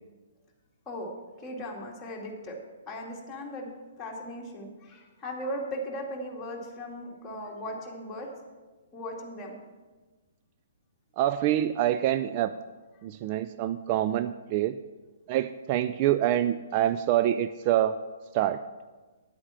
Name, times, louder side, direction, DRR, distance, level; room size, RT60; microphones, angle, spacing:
voice 1, 1.4-2.6 2.9-3.7 4.0-8.3 8.9-9.5, equal, 15° left, -3 dB, 2.3 m, -37 dB
voice 2, 11.2-12.5 13.0-14.8 15.3-18.0 18.3-18.6, right 12 dB, 35° right, 11 dB, 0.3 m, -26 dB
10.0 x 8.6 x 5.7 m, 1.3 s
figure-of-eight pair, 120°, 0 cm